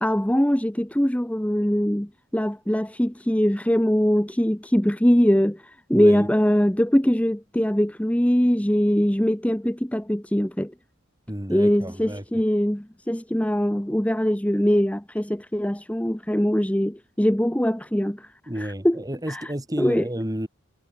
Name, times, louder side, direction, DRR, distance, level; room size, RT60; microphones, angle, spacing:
voice 1, 0.0-10.7 11.5-18.3 18.6-19.0 19.3-19.5 19.8-20.0, equal, 5° left, 1.1 m, -22 dB
voice 2, 5.9-6.3 11.3-12.2 18.5-20.5, equal, 15° right, 2.4 m, -31 dB
head